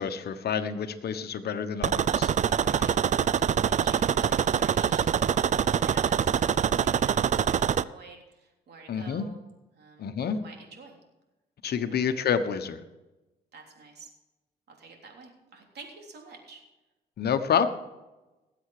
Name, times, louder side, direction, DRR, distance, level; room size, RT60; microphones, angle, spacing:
voice 1, 0.0-2.6 8.9-9.3 10.0-10.4 11.6-12.8 17.2-17.7, left 7 dB, 65° left, 9 dB, 1.2 m, -28 dB
sound 1, 1.8-7.8, right 8 dB, 45° right, 0.5 m, -24 dB
voice 2, 2.5-9.4 9.7-11.0 11.9-12.0 13.5-14.1 14.7-16.6 17.5-17.6, right 4 dB, 70° right, 1 dB, 3.4 m, -49 dB
19.0 x 8.0 x 4.9 m, 1.1 s
cardioid pair, 95°, 18 cm